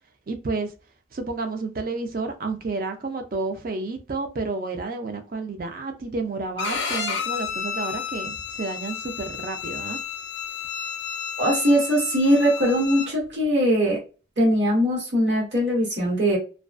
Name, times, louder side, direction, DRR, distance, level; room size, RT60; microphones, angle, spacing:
voice 1, 0.3-0.7 1.1-10.0, right 3 dB, 50° right, 0.4 m, -30 dB
Bowed string instrument, 6.6-13.1, left 7 dB, 70° left, 0.5 m, -31 dB
voice 2, 11.4-14.0 14.4-16.4, equal, 65° right, 1.1 m, -21 dB
2.3 x 2.2 x 2.4 m
head